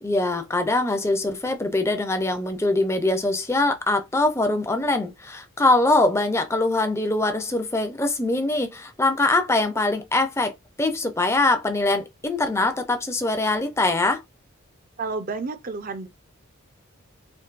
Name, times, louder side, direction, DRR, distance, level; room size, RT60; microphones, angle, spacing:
voice 1, 0.0-10.5 10.8-14.2, left 2 dB, 10° left, 0.5 m, -23 dB
voice 2, 15.0-16.1, right 4 dB, 40° right, 0.5 m, -30 dB
4.5 x 2.6 x 2.5 m
head